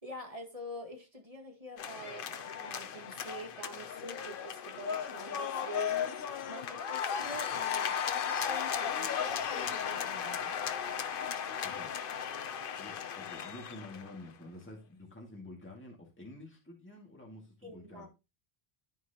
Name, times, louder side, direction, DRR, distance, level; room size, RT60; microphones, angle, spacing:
voice 1, 0.0-6.2 6.5-10.9 17.6-18.1, right 1 dB, 35° right, 2.0 m, -46 dB
sound 1, 1.8-14.2, left 8 dB, 60° left, 0.8 m, -36 dB
voice 2, 12.8-18.1, left 1 dB, 10° left, 2.1 m, -49 dB
13.5 x 4.7 x 2.9 m
omnidirectional pair, 1.0 m